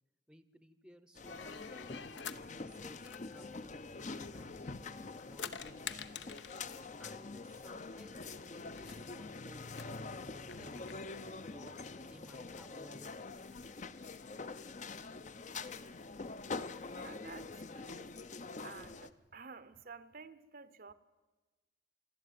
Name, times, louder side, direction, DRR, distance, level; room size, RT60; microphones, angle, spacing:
voice 1, 0.3-2.1 2.5-6.4 7.0-11.0 11.5-13.8, equal, 5° right, 12 dB, 0.7 m, -59 dB
sound 1, 1.1-19.1, left 3 dB, 40° left, 0.6 m, -45 dB
sound 2, 1.3-2.5 3.0-4.7 5.1-6.7 7.8-7.9 8.1-8.2 8.6-9.0 9.7-11.0, left 7 dB, 75° left, 0.9 m, -48 dB
voice 2, 16.9-18.2 18.6-20.9, right 5 dB, 50° right, 14 dB, 0.7 m, -52 dB
27.5 x 12.0 x 9.3 m, 1.2 s
head